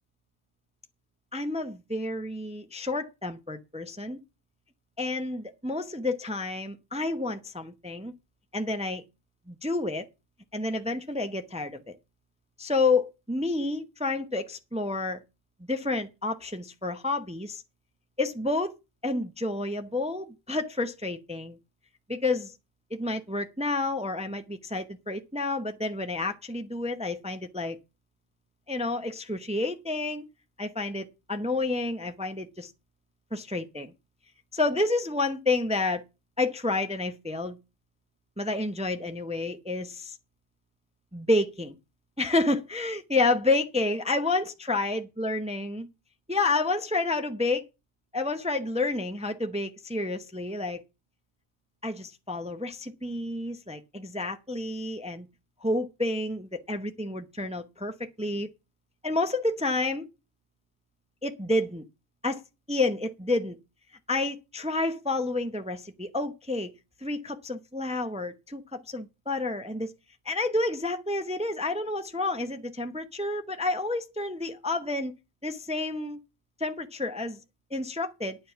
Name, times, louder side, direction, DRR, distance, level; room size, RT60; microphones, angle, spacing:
voice 1, 1.3-4.2 5.0-8.1 8.5-9.0 9.5-10.1 10.5-11.9 12.6-15.2 15.7-17.6 18.2-18.7 19.0-21.6 22.1-22.6 23.0-27.8 28.7-30.2 30.6-32.7 33.3-33.9 34.5-36.0 36.4-37.6 38.4-40.2 41.1-41.7 42.2-45.9 46.3-47.7 48.1-50.8 51.8-55.3 55.6-58.5 59.0-60.1 61.2-61.8 62.2-62.4 62.7-63.6 64.1-66.7 67.0-69.9 70.2-75.1 75.4-76.2 76.6-77.4 77.7-78.4, left 2 dB, 5° right, 0.7 m, -29 dB
9.3 x 9.2 x 5.7 m
omnidirectional pair, 1.4 m